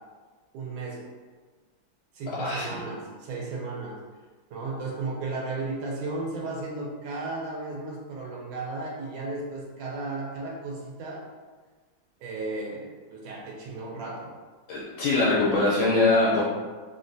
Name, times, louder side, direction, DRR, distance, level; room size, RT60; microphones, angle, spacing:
voice 1, 0.5-1.1 2.1-4.0 4.5-11.2 12.2-14.3, right 3 dB, 85° right, -3 dB, 1.4 m, -34 dB
voice 2, 2.3-2.8 14.7-16.4, left 2 dB, 80° left, -7 dB, 1.4 m, -23 dB
3.4 x 2.2 x 2.6 m, 1.4 s
omnidirectional pair, 2.1 m